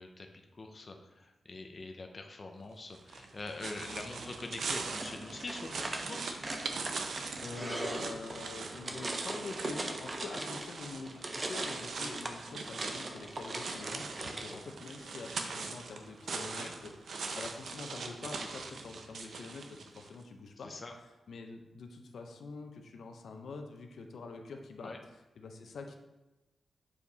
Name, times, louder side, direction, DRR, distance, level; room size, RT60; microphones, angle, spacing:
voice 1, 0.0-6.4 12.0-12.1 14.1-14.6 16.6-16.7 20.6-20.9 24.8-25.0, left 2 dB, 35° left, 4 dB, 0.6 m, -44 dB
sound 1, 2.9-20.1, right 4 dB, 75° right, 0.7 m, -42 dB
sound 2, 4.9-10.8 11.0-14.6, right 2 dB, 30° right, 0.7 m, -40 dB
voice 2, 7.4-20.7 21.3-24.9 25.4-26.0, left 3 dB, 80° left, 4 dB, 0.7 m, -45 dB
7.1 x 5.0 x 4.0 m, 1.1 s
wide cardioid pair, 135°, 0 cm